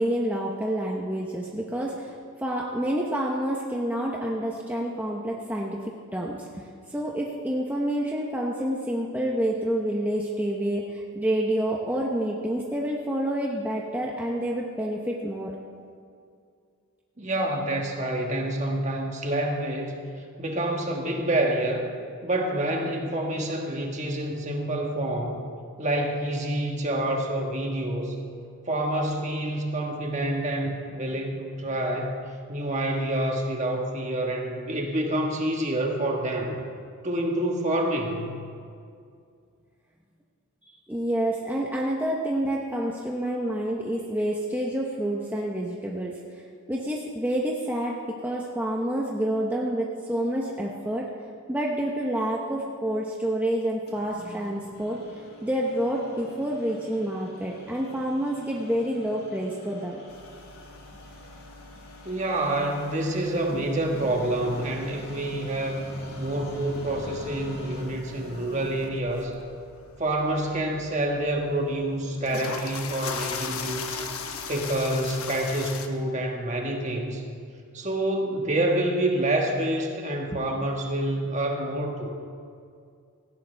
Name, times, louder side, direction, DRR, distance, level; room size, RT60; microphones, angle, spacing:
voice 1, 0.0-15.5 40.6-51.1 51.5-55.0 55.4-60.0 80.3-80.4, right 1 dB, 10° right, -2 dB, 0.9 m, -28 dB
voice 2, 17.2-20.0 20.4-21.9 22.2-25.4 25.8-28.1 28.7-32.2 32.5-36.6 37.0-38.4 62.0-69.3 70.0-74.0 74.5-77.2 77.7-82.1, right 1 dB, 30° right, 1 dB, 1.5 m, -27 dB
sound 1, 53.9-68.9, left 1 dB, 45° left, 2.7 m, -46 dB
sound 2, 60.1-75.9, left 5 dB, 75° left, 1.1 m, -40 dB
17.5 x 16.0 x 3.4 m, 2.3 s
head